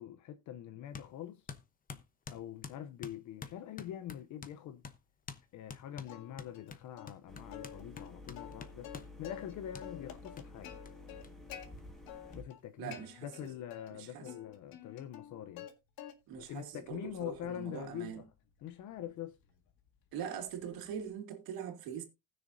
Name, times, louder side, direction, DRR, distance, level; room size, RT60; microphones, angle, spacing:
voice 1, 0.0-1.5 2.3-4.8 5.5-10.8 12.3-15.7 16.4-18.2 18.6-19.4, left 11 dB, 55° left, 0.7 m, -44 dB
sound 1, 0.9-1.1 1.5-4.6 4.8-5.0 5.3-5.4 5.7-9.1 9.7-9.9 10.4-10.5 10.9-11.0 11.2-11.3 11.6-12.3, left 6 dB, 25° left, 0.9 m, -48 dB
Plucked string instrument, 6.1-6.7 7.0-7.1 7.5-9.5 9.8-11.7 12.1-12.6 12.9-13.9 14.3-15.7 16.0-16.5 16.9-21.1, left 10 dB, 80° left, 2.0 m, -50 dB
sound 2, 7.3-12.4, left 2 dB, ahead, 2.0 m, -51 dB
voice 2, 12.8-13.5 13.9-14.3 16.3-18.2 20.1-22.0, right 8 dB, 90° right, 2.3 m, -42 dB
19.0 x 6.6 x 2.7 m
cardioid pair, 160°, 35 cm